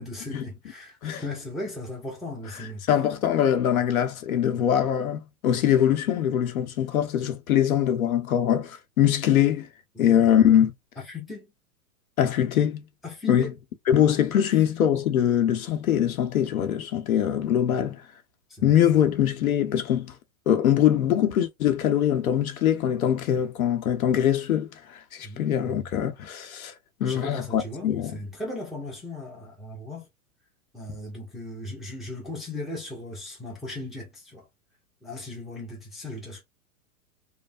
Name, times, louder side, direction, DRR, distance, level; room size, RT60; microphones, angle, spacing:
voice 1, 0.0-2.8 4.6-4.7 9.9-10.2 11.0-11.5 13.0-13.6 14.4-14.6 18.5-18.7 25.2-25.9 27.0-30.1 30.7-34.5 35.0-36.4, left 2 dB, ahead, 0.4 m, -37 dB
voice 2, 2.9-9.7 10.0-10.7 12.2-12.8 13.3-13.5 13.9-18.0 18.6-20.1 20.5-24.7 25.1-26.7 27.0-28.1, left 10 dB, 70° left, 0.8 m, -22 dB
3.1 x 2.1 x 2.4 m
hypercardioid pair, 110°, 43 cm